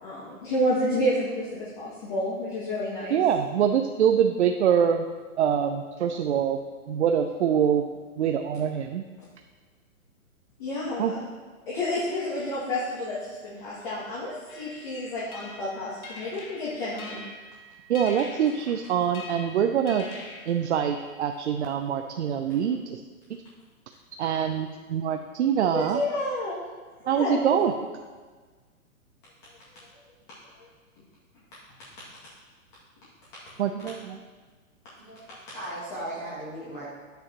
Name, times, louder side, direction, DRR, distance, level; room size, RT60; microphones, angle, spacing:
voice 1, 0.0-3.2 10.6-11.3 11.7-17.2 25.7-26.6 27.0-27.7, left 1 dB, 35° left, -8 dB, 2.2 m, -30 dB
voice 2, 3.1-5.0 5.4-6.6 6.9-7.8 8.2-9.0 11.0-11.1 17.9-20.1 20.5-23.0 24.2-26.0 27.1-27.7 33.6-34.2, right 8 dB, 55° right, 5 dB, 0.6 m, -24 dB
sound 1, 14.5-21.1, left 2 dB, 90° left, 2.5 m, -44 dB
voice 3, 35.0-36.8, right 1 dB, 5° left, -7 dB, 0.5 m, -37 dB
10.5 x 9.0 x 3.0 m, 1.4 s
hypercardioid pair, 155°, 42 cm